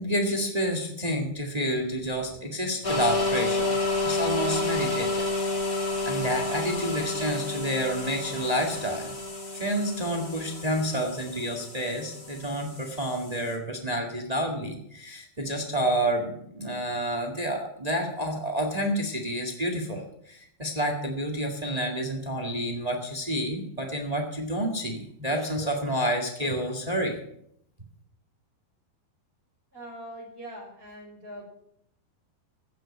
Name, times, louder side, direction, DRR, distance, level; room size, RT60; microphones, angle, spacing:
voice 1, 0.0-5.3 5.6-9.1 9.5-27.2, equal, 70° right, 3 dB, 0.3 m, -29 dB
sound 1, 2.8-13.5, left 2 dB, 25° left, 2.6 m, -30 dB
voice 2, 29.7-31.4, right 1 dB, 15° right, -2 dB, 5.6 m, -42 dB
15.5 x 7.8 x 8.9 m, 0.73 s
omnidirectional pair, 4.6 m